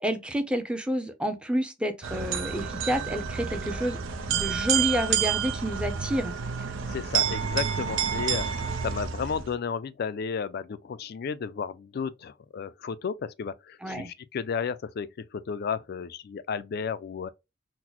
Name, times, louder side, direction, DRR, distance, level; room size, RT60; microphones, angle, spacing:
voice 1, 0.0-4.0 4.3-6.3 13.8-14.1, equal, 5° right, 0.5 m, -29 dB
sound 1, 2.0-9.5, right 7 dB, 90° right, 0.5 m, -29 dB
voice 2, 6.9-17.3, left 6 dB, 55° left, 0.3 m, -33 dB
3.9 x 2.1 x 2.9 m
head